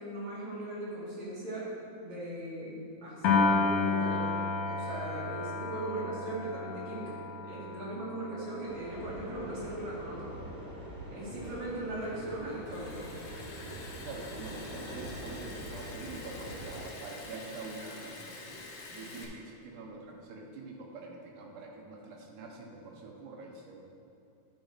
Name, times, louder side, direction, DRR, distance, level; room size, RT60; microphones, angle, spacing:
voice 1, 0.0-1.7 2.0-7.1 7.4-10.3 11.1-13.0, right 1 dB, 65° right, -8 dB, 3.4 m, -39 dB
Piano, 3.2-9.6, left 4 dB, 70° left, 1.6 m, -32 dB
sound 1, 8.7-16.8, right 1 dB, 30° right, 1.1 m, -44 dB
Liquid, 11.2-19.3, left 3 dB, 90° left, 1.0 m, -48 dB
voice 2, 14.0-18.6 18.9-23.8, right 3 dB, 85° right, -1 dB, 2.5 m, -45 dB
10.5 x 4.1 x 5.0 m, 2.8 s
omnidirectional pair, 3.6 m